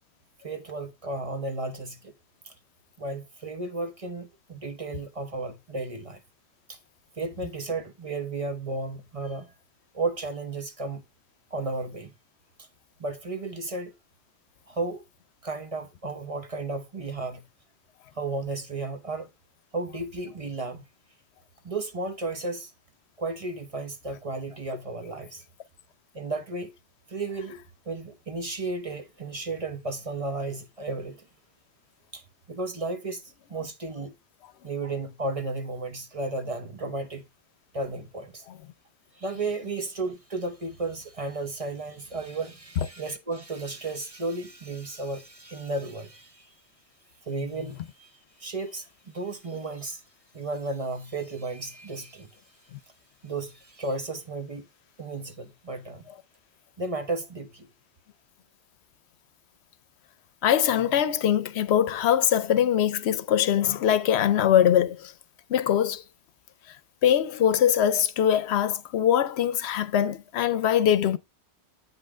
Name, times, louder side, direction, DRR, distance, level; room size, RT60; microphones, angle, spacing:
voice 1, 0.4-2.1 2.4-2.5 3.0-6.2 6.7-6.8 7.2-9.5 9.9-11.0 11.5-12.1 12.6-12.7 13.0-13.9 14.7-15.0 15.4-17.4 18.1-19.3 19.7-20.8 21.6-22.7 23.2-25.4 26.1-26.7 27.1-31.3 32.1-33.2 33.5-34.1 34.6-37.2 37.7-38.5 39.1-46.5 47.2-48.1 48.4-50.0 50.3-52.3 53.2-54.7 55.0-56.0 56.8-57.7, right 3 dB, 35° right, 1.0 m, -33 dB
voice 2, 60.4-65.1 65.5-66.0 67.0-71.2, left 10 dB, 75° left, 0.9 m, -22 dB
8.1 x 5.4 x 3.7 m
omnidirectional pair, 1.1 m